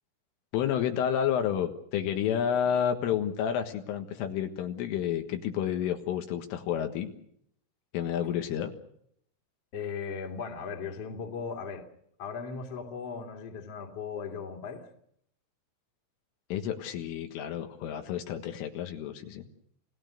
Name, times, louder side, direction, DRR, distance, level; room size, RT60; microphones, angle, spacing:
voice 1, 0.5-7.1 7.9-8.7 16.5-19.4, left 9 dB, 75° left, 5 dB, 4.0 m, -30 dB
voice 2, 9.7-11.8 12.2-14.8, left 5 dB, 35° left, 3 dB, 3.1 m, -37 dB
30.0 x 18.0 x 6.7 m, 0.69 s
omnidirectional pair, 5.9 m